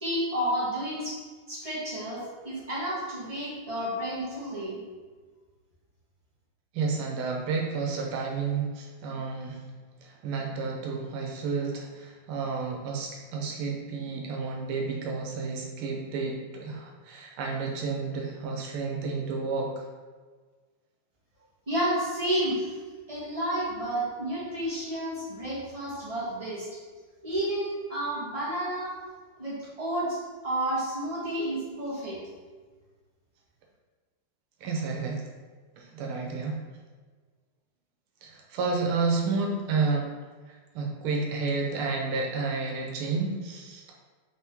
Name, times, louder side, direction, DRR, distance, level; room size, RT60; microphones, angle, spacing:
voice 1, 0.0-1.2 1.5-4.8 21.7-22.7 23.1-26.7 27.2-29.0 29.4-32.2, right 1 dB, 25° right, -8 dB, 0.8 m, -31 dB
voice 2, 6.7-9.6 10.0-19.8 34.6-35.2 35.8-36.6 38.2-40.1 40.5-44.0, right 4 dB, 85° right, 0 dB, 1.6 m, -31 dB
4.0 x 3.5 x 2.9 m, 1.4 s
omnidirectional pair, 2.3 m